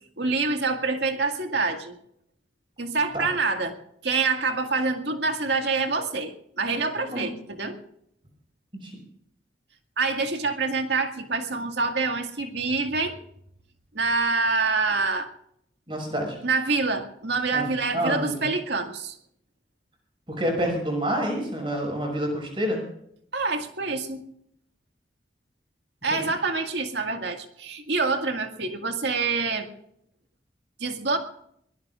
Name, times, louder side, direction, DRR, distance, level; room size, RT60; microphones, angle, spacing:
voice 1, 0.2-2.0 2.8-3.8 4.0-7.8 10.0-13.1 13.9-15.3 16.4-19.2 23.3-24.2 26.0-29.7 30.8-31.2, right 4 dB, 75° right, 4 dB, 2.0 m, -26 dB
voice 2, 15.9-16.3 17.5-17.6 17.9-18.5 20.3-22.8 26.1-26.3, equal, 30° right, 1 dB, 6.5 m, -28 dB
23.5 x 18.5 x 2.5 m, 0.71 s
head